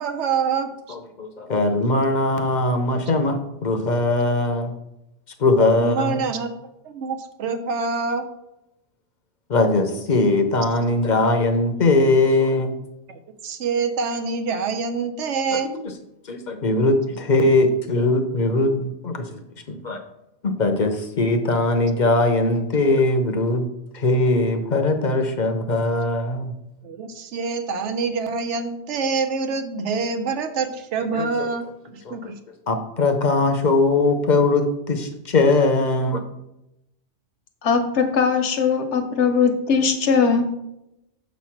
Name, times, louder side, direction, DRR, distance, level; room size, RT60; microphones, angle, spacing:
voice 1, 0.0-1.0 5.8-6.5 6.8-8.3 13.1-15.7 26.8-31.7 31.9-32.4, right 5 dB, 80° right, 7 dB, 1.0 m, -26 dB
voice 2, 0.9-4.7 5.4-6.2 9.5-12.8 16.3-19.2 19.8-20.0 20.4-23.7 23.9-26.5 31.1-31.3 32.1-32.3 32.7-36.2, left 2 dB, 50° left, 6 dB, 0.7 m, -20 dB
voice 3, 37.6-40.5, left 5 dB, 75° left, 6 dB, 1.1 m, -20 dB
6.7 x 3.2 x 5.7 m, 0.86 s
omnidirectional pair, 1.2 m